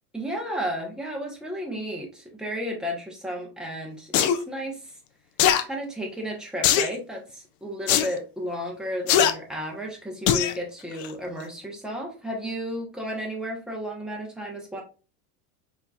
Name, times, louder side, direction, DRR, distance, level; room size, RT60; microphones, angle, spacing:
voice 1, 0.1-4.8 5.6-14.8, equal, ahead, -1 dB, 1.0 m, -33 dB
sound 1, 4.1-4.4 5.4-5.6 6.6-6.9 7.9-8.1 9.1-9.3 10.3-10.5 11.0-11.1, left 9 dB, 45° left, 0.5 m, -20 dB
4.5 x 2.9 x 2.3 m, 0.34 s
supercardioid pair, 125°, 44 cm